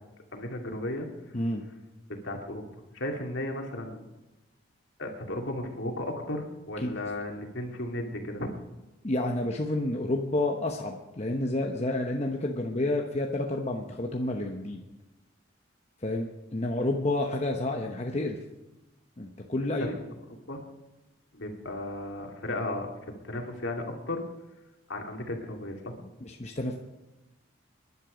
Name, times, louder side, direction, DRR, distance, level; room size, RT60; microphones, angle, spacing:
voice 1, 0.3-1.1 2.2-2.6 2.9-4.0 5.0-8.5 19.8-20.1 20.5-20.6 21.3-24.2 24.9-25.9, left 1 dB, 65° left, 2 dB, 2.4 m, -35 dB
voice 2, 1.3-1.6 6.8-7.0 9.0-14.8 16.0-18.4 19.2-20.0 26.2-26.8, left 2 dB, 30° left, 1 dB, 1.0 m, -30 dB
25.5 x 11.0 x 5.1 m, 1.1 s
head